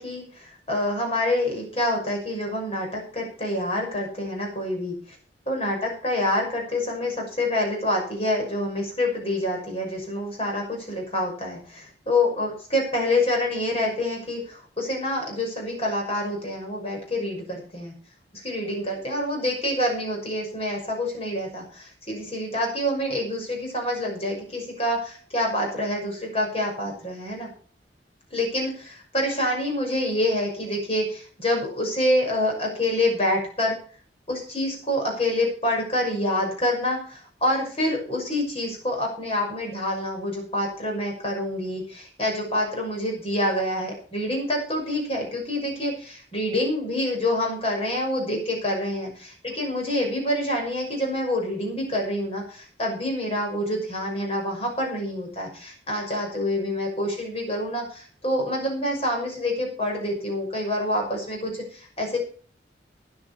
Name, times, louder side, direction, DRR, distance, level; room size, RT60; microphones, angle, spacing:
voice 1, 0.0-5.2 5.5-17.9 18.3-27.5 28.3-33.8 34.3-49.1 49.4-62.2, left 1 dB, 35° left, 1 dB, 6.2 m, -27 dB
13.0 x 9.6 x 5.7 m, 0.43 s
head